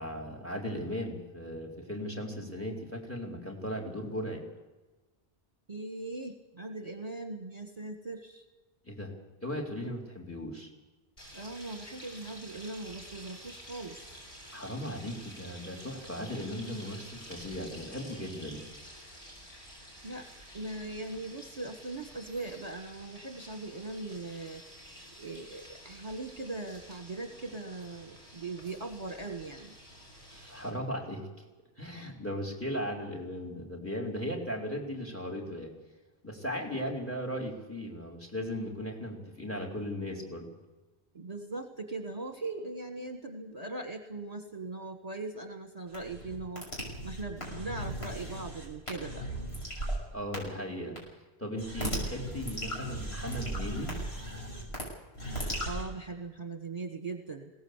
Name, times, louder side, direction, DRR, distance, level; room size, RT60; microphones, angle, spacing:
voice 1, 0.0-4.4 8.9-9.1 9.4-10.7 14.5-18.6 30.3-31.4 31.8-35.7 36.2-40.5 50.1-51.0 51.4-54.0, equal, 10° left, 2 dB, 4.2 m, -37 dB
voice 2, 5.7-8.4 11.3-14.1 20.0-20.3 20.5-24.6 25.1-29.7 41.1-49.3 55.6-57.5, right 3 dB, 40° right, 6 dB, 1.5 m, -40 dB
sound 1, 11.2-30.7, equal, 35° left, 6.6 m, -50 dB
sound 2, 45.9-50.0 50.3-50.4 51.0-51.1 51.6-54.8 55.1-55.8, right 1 dB, 90° left, 6.6 m, -36 dB
21.0 x 17.5 x 8.1 m, 1.1 s
omnidirectional pair, 1.0 m